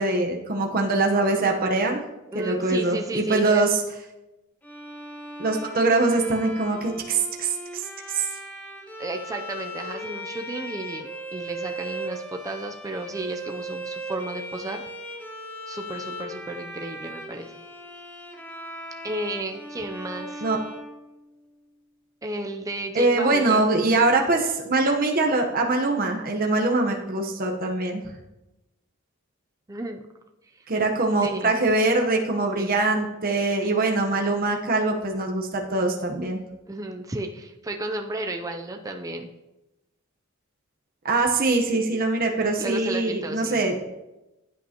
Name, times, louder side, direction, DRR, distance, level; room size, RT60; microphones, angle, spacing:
voice 1, 0.0-2.0 2.3-3.8 5.4-8.3 20.4-20.6 22.9-28.0 30.7-36.4 41.0-43.7, right 2 dB, 45° right, 1 dB, 1.0 m, -23 dB
voice 2, 2.3-3.7 9.0-14.8 15.7-17.6 19.0-20.4 22.2-23.7 29.7-30.1 30.5-30.6 31.2-31.5 32.6-32.7 36.7-39.3 42.6-43.6, right 1 dB, 15° right, 4 dB, 0.5 m, -33 dB
Bowed string instrument, 4.6-21.6, right 1 dB, 10° left, 1.3 m, -38 dB
15.5 x 8.8 x 2.9 m, 1.0 s
head